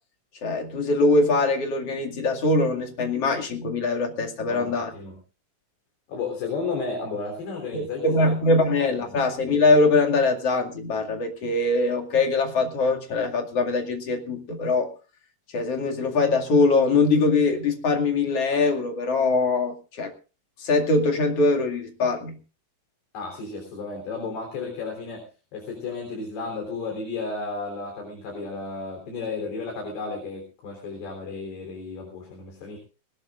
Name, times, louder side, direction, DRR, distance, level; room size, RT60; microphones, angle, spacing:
voice 1, 0.4-4.9 7.7-14.9 15.5-20.1 20.6-22.4, left 3 dB, 45° left, 2 dB, 2.9 m, -22 dB
voice 2, 4.5-5.2 6.1-8.3 9.1-9.2 23.1-25.2 25.5-32.8, left 4 dB, 80° left, 1 dB, 5.7 m, -33 dB
20.5 x 19.0 x 2.5 m, 0.34 s
omnidirectional pair, 4.5 m